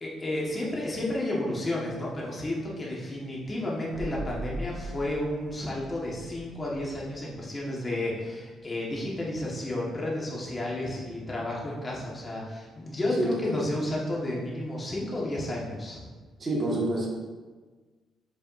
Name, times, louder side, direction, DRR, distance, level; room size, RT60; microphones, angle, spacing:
voice 1, 0.0-16.1, left 1 dB, 30° left, -4 dB, 1.5 m, -32 dB
sound 1, 3.9-7.7 7.9-8.0, right 1 dB, ahead, 0.5 m, -40 dB
voice 2, 13.2-13.6 16.4-17.1, right 1 dB, 35° right, -4 dB, 1.6 m, -28 dB
7.4 x 4.9 x 2.6 m, 1.3 s
cardioid pair, 90°, 0 cm